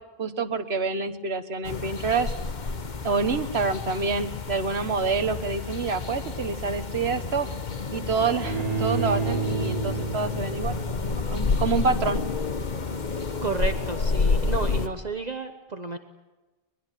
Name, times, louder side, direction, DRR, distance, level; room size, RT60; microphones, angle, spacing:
voice 1, 0.2-2.3 3.0-7.5 7.9-10.8 11.0-12.2, right 4 dB, 90° right, 10 dB, 1.7 m, -27 dB
sound 1, 1.6-14.9, left 4 dB, 50° left, 1.3 m, -29 dB
Bowed string instrument, 8.4-11.5, right 5 dB, 70° right, 2.3 m, -30 dB
voice 2, 13.4-16.0, right 3 dB, 45° right, 6 dB, 1.2 m, -31 dB
22.5 x 22.5 x 9.2 m, 1.2 s
omnidirectional pair, 1.0 m